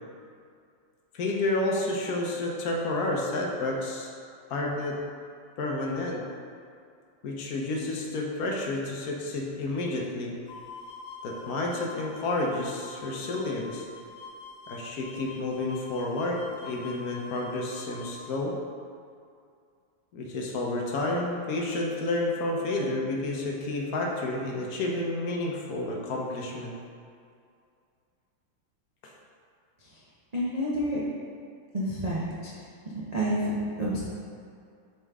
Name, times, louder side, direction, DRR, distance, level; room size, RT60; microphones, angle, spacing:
voice 1, 1.1-4.1 4.5-5.0 5.6-6.3 7.2-10.3 11.2-13.9 14.7-18.6 20.1-26.7 29.0-29.1, left 2 dB, 60° left, -1 dB, 1.0 m, -30 dB
sound 1, 10.5-18.2, left 3 dB, 80° left, 1.5 m, -45 dB
voice 2, 30.3-31.0 31.7-32.5 32.9-34.0, equal, 65° right, -8 dB, 0.4 m, -29 dB
7.1 x 4.2 x 3.5 m, 2.3 s
omnidirectional pair, 2.2 m